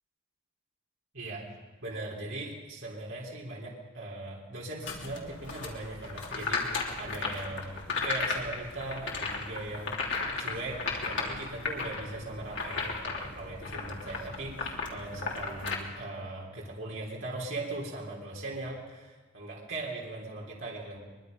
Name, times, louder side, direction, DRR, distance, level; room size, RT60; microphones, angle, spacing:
voice 1, 1.8-21.0, right 2 dB, 55° right, -4 dB, 3.5 m, -39 dB
sound 1, 4.8-15.7, left 4 dB, 55° left, 3.2 m, -35 dB
23.0 x 22.5 x 5.3 m, 1.3 s
head